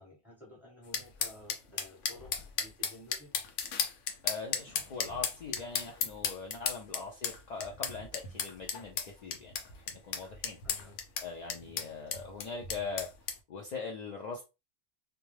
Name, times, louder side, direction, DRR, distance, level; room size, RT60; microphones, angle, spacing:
voice 1, 0.0-3.3 10.6-11.0 11.7-11.9, left 2 dB, ahead, 0.9 m, -53 dB
sound 1, 0.9-13.4, left 7 dB, 85° left, 0.9 m, -35 dB
voice 2, 4.2-10.9 11.2-13.1 13.5-14.5, left 4 dB, 65° left, 0.4 m, -41 dB
2.2 x 2.1 x 3.1 m
omnidirectional pair, 1.2 m